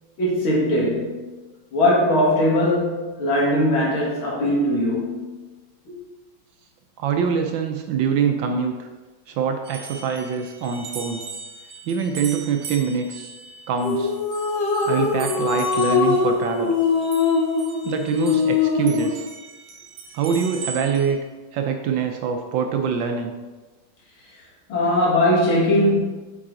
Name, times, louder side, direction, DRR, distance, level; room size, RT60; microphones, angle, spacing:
voice 1, 0.2-1.3 1.7-5.3 24.7-26.0, left 1 dB, 70° left, -4 dB, 2.7 m, -20 dB
voice 2, 7.0-8.9 9.3-11.2 11.9-13.3 13.7-14.1 14.9-16.7 17.8-19.2 20.1-21.2 21.5-23.3, right 6 dB, 75° right, 5 dB, 1.2 m, -24 dB
sound 1, 9.6-18.6 18.9-21.2, right 5 dB, 60° right, 1.5 m, -38 dB
sound 2, 13.8-19.2, left 5 dB, 45° left, 1.1 m, -22 dB
8.6 x 4.8 x 3.8 m, 1.3 s
omnidirectional pair, 2.4 m